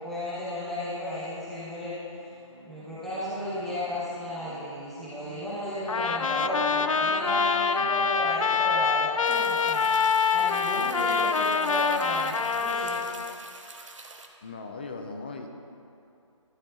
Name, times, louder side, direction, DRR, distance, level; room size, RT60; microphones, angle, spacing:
voice 1, 0.0-1.9 2.6-9.8 10.3-13.0, left 1 dB, ahead, -12 dB, 0.9 m, -34 dB
sound 1, 2.2-8.1, right 2 dB, 45° right, 1.1 m, -52 dB
Trumpet, 5.9-13.3, left 5 dB, 85° left, 0.4 m, -25 dB
voice 2, 7.8-8.2 14.4-15.5, left 3 dB, 20° left, 4 dB, 0.3 m, -39 dB
sound 2, 9.2-14.3, right 3 dB, 65° right, 0.8 m, -45 dB
11.5 x 4.5 x 3.7 m, 2.7 s
figure-of-eight pair, 150°, 17 cm